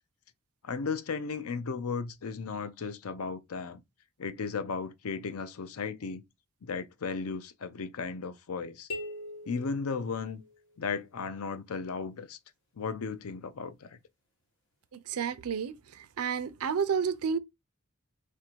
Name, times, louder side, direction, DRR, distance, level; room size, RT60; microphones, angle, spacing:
voice 1, 0.6-3.8 4.2-6.2 6.6-8.9 9.5-10.4 10.8-12.4 12.8-14.0, left 5 dB, 80° left, 0.5 m, -35 dB
sound 1, 8.9-10.8, left 1 dB, 55° left, 1.3 m, -42 dB
voice 2, 15.1-15.7 16.2-17.4, right 6 dB, 90° right, 0.5 m, -30 dB
3.3 x 2.6 x 4.4 m
head